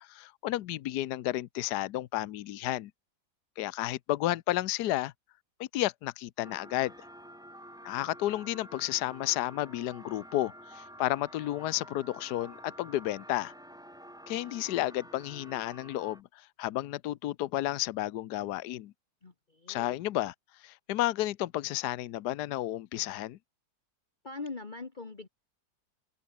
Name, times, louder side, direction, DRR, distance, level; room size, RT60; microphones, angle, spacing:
voice 1, 0.0-2.9 3.6-5.1 5.6-6.9 7.8-13.5 14.3-18.9 19.7-20.3 20.6-23.4, left 15 dB, 75° left, 1.3 m, -32 dB
sound 1, 6.4-16.2, equal, ahead, 1.3 m, -50 dB
voice 2, 19.2-20.0 24.2-25.3, left 3 dB, 30° left, 1.6 m, -42 dB
open air
omnidirectional pair, 1.8 m